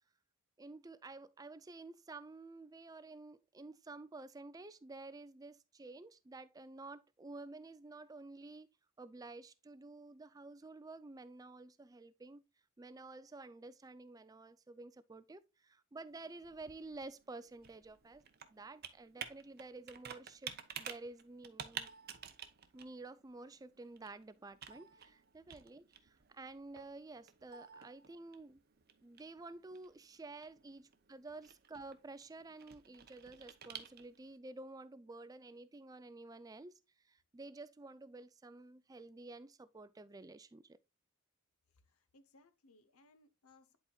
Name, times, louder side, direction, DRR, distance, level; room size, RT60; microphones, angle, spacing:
voice 1, 0.6-8.7 9.0-12.4 12.8-18.2 18.5-21.9 22.7-28.6 29.0-40.8, right 3 dB, 15° right, 0.3 m, -51 dB
Computer keyboard, 16.1-34.4, right 8 dB, 45° right, 0.7 m, -52 dB
voice 2, 41.9-43.8, left 2 dB, 80° left, 0.8 m, -66 dB
10.5 x 4.2 x 2.3 m
head